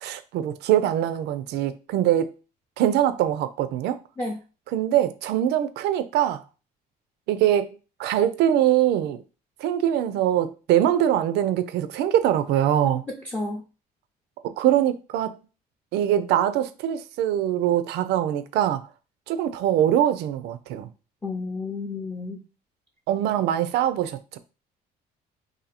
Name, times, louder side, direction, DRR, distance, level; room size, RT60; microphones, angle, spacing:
voice 1, 0.0-2.3 2.8-4.0 4.7-6.4 7.3-9.2 9.6-13.0 14.6-15.4 15.9-18.8 19.3-20.9 23.1-24.4, right 11 dB, 80° right, 0.4 m, -23 dB
voice 2, 13.1-13.6 21.2-22.4, left 3 dB, 10° left, 0.6 m, -31 dB
2.7 x 2.6 x 4.1 m
cardioid pair, 110°, 17 cm